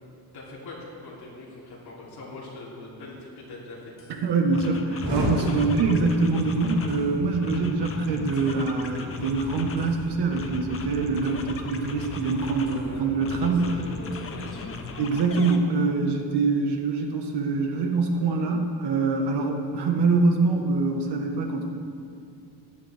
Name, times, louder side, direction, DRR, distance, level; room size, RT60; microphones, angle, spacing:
voice 1, 0.3-3.9 12.7-13.1 13.4-14.9, left 2 dB, 65° left, -5 dB, 3.2 m, -42 dB
sound 1, 4.0-4.1 4.5-7.1 7.4-10.0 10.3-12.8 13.2-15.6, left 4 dB, 35° left, 0.7 m, -38 dB
voice 2, 4.2-13.7 15.0-21.7, right 3 dB, 75° right, 3 dB, 1.5 m, -24 dB
Explosion, 5.0-14.9, equal, 40° right, 3.4 m, -36 dB
15.5 x 11.0 x 3.5 m, 2.4 s
cardioid pair, 175°, 41 cm